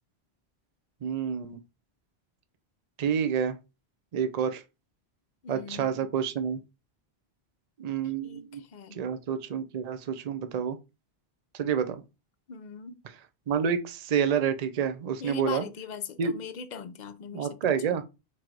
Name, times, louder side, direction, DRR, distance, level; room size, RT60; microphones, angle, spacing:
voice 1, 1.0-1.6 3.0-3.6 4.1-4.6 5.5-6.6 7.8-8.6 8.9-10.8 11.5-12.0 13.5-15.7 16.2-16.3 17.3-18.0, right 7 dB, 45° right, 0.6 m, -28 dB
voice 2, 5.4-6.1 8.0-9.0 12.5-13.0 15.2-18.0, left 6 dB, 55° left, 0.6 m, -41 dB
3.8 x 3.1 x 4.5 m
omnidirectional pair, 1.1 m